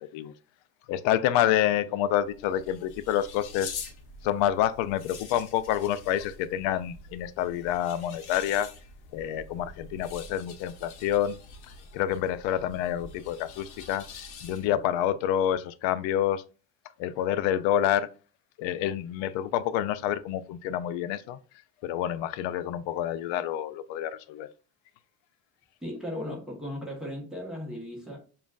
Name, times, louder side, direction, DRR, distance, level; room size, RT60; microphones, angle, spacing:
voice 1, 0.9-3.7 4.2-8.7 9.1-11.4 11.9-14.1 14.4-16.4 17.0-18.1 18.6-21.4 21.8-24.5, left 11 dB, 80° left, 0.5 m, -28 dB
sound 1, 2.2-14.9, left 4 dB, 55° left, 1.0 m, -45 dB
voice 2, 25.8-28.2, left 1 dB, ahead, 1.1 m, -36 dB
7.1 x 2.5 x 2.4 m
cardioid pair, 165°, 45 cm